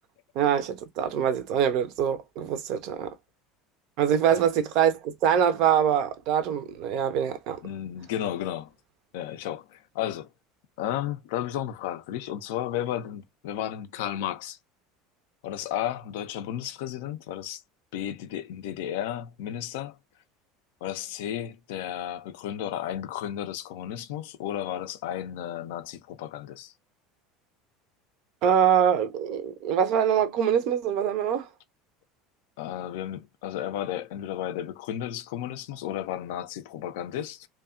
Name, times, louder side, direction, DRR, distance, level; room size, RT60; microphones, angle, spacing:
voice 1, 0.4-3.1 4.0-7.6 28.4-31.5, right 9 dB, 55° right, 0.5 m, -24 dB
voice 2, 7.6-8.7 9.1-10.3 10.8-14.6 15.4-17.6 17.9-20.0 20.8-26.7 32.6-37.5, left 11 dB, 60° left, 0.4 m, -33 dB
2.6 x 2.2 x 2.3 m
figure-of-eight pair, 70°, 0 cm